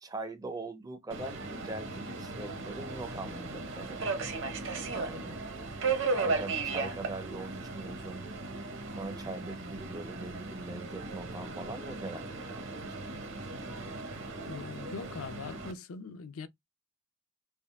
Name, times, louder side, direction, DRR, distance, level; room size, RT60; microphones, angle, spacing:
voice 1, 0.0-4.3 4.9-5.4 6.1-8.3 9.0-12.8, right 2 dB, 15° right, 0.4 m, -42 dB
Subway metro underground, 1.1-15.7, right 3 dB, 55° right, 0.8 m, -36 dB
voice 2, 14.5-16.5, left 5 dB, 70° left, 0.5 m, -41 dB
3.6 x 2.4 x 3.4 m
head